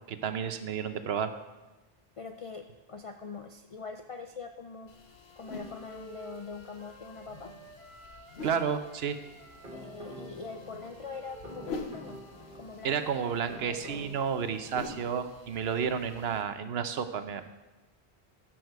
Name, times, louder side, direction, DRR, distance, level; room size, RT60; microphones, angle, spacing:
voice 1, 0.1-1.3 8.4-9.2 12.8-17.5, right 7 dB, 80° right, 10 dB, 1.0 m, -31 dB
voice 2, 2.2-5.0 5.4-7.5 9.7-12.2 12.5-13.1 13.5-14.0, left 4 dB, 45° left, 5 dB, 0.5 m, -43 dB
sound 1, 4.9-16.4, left 3 dB, 85° left, 1.3 m, -47 dB
Wind instrument woodwind instrument, 4.9-8.6 8.8-12.8, right 2 dB, 30° right, 1.9 m, -52 dB
sound 2, 9.2-15.0, equal, 60° right, 2.0 m, -49 dB
14.5 x 6.1 x 4.6 m, 1.1 s
omnidirectional pair, 1.0 m